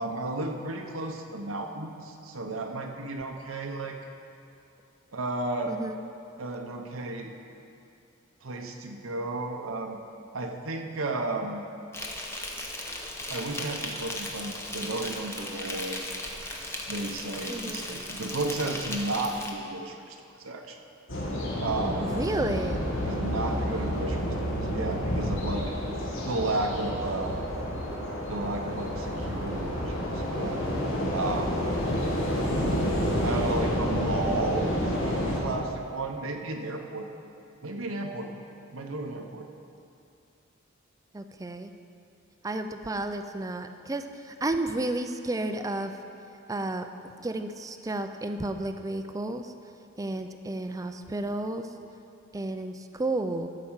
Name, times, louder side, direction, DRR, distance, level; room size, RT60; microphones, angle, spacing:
voice 1, 0.0-4.0 5.1-5.8 6.4-7.3 8.4-10.0 10.3-11.6 13.3-16.0 16.9-20.8 21.6-22.0 23.1-24.3 24.6-25.8 26.2-27.4 28.3-30.6 31.1-31.7 33.2-37.1 37.6-38.3 38.7-39.5, right 2 dB, 80° right, 3 dB, 0.8 m, -33 dB
voice 2, 5.7-6.0 17.5-17.8 22.0-22.8 41.1-41.7 42.4-45.9 46.5-46.9 47.2-49.5 50.0-51.7 52.3-53.5, right 2 dB, 15° right, 8 dB, 0.4 m, -32 dB
Insect, 11.9-19.5, left 1 dB, 15° left, 0.9 m, -37 dB
sound 1, 21.1-35.4, equal, 75° left, 2.0 m, -29 dB
13.5 x 5.0 x 7.2 m, 2.6 s
head